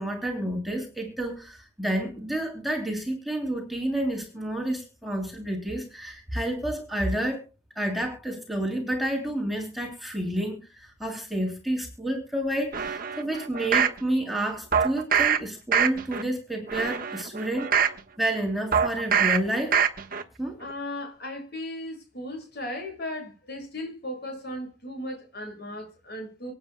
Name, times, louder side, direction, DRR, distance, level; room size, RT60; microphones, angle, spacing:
voice 1, 0.0-7.5 7.8-17.7 18.2-19.8 20.4-20.6, right 1 dB, ahead, 2.9 m, -30 dB
sound 1, 12.7-14.0 14.7-15.4 15.7-16.2 16.7-18.0 18.7-19.4 19.7-20.2 20.6-20.7, right 7 dB, 45° right, 1.3 m, -24 dB
voice 2, 20.6-26.5, left 1 dB, 50° left, 6.6 m, -36 dB
25.5 x 8.9 x 2.2 m
head